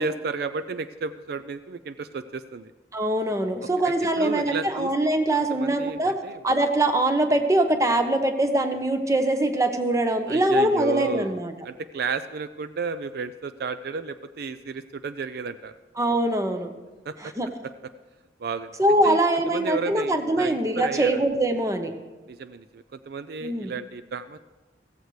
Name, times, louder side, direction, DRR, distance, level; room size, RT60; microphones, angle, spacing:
voice 1, 0.0-2.7 4.2-4.9 5.5-6.4 10.3-15.7 17.1-17.3 18.4-18.7 19.0-19.2 19.5-21.2 22.3-24.4, right 4 dB, 60° right, 12 dB, 0.4 m, -32 dB
voice 2, 2.9-6.2 6.4-11.5 16.0-16.7 17.2-17.5 18.8-21.9 23.4-23.7, right 1 dB, 20° right, 7 dB, 0.9 m, -23 dB
15.5 x 14.5 x 3.2 m, 1.2 s
head